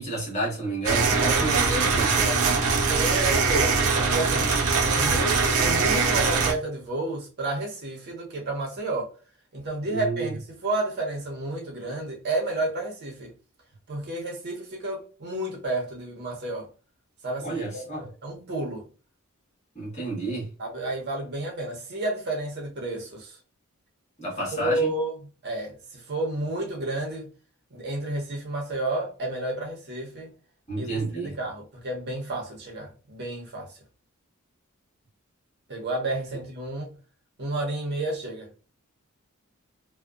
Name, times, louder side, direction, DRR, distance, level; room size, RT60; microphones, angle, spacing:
voice 1, 0.0-2.4 9.9-10.3 17.4-18.0 19.7-20.5 24.2-24.9 30.7-31.3, right 2 dB, 30° left, 1.3 m, -30 dB
sound 1, 0.8-6.5, right 4 dB, 90° right, 0.6 m, -22 dB
voice 2, 1.2-2.0 2.9-4.5 4.9-9.1 9.5-13.3 13.9-16.7 17.2-18.9 20.6-23.4 24.5-27.3 27.7-30.3 30.8-33.8 35.7-37.0 37.4-38.5, right 2 dB, 50° right, 0.7 m, -31 dB
2.7 x 2.1 x 2.3 m
head